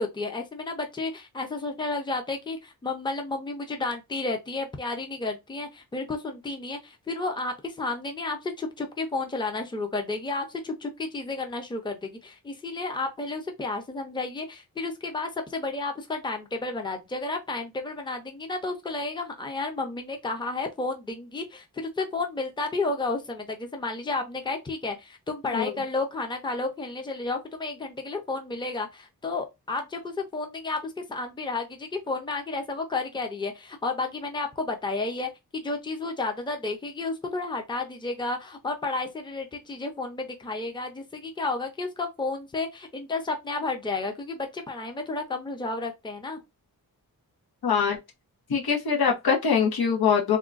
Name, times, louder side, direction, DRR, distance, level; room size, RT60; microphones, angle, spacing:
voice 1, 0.0-46.4, left 3 dB, 15° left, 0.5 m, -32 dB
voice 2, 47.6-48.0 48.5-50.4, left 6 dB, 85° left, 1.0 m, -23 dB
3.5 x 2.3 x 2.4 m
wide cardioid pair, 145°, 36 cm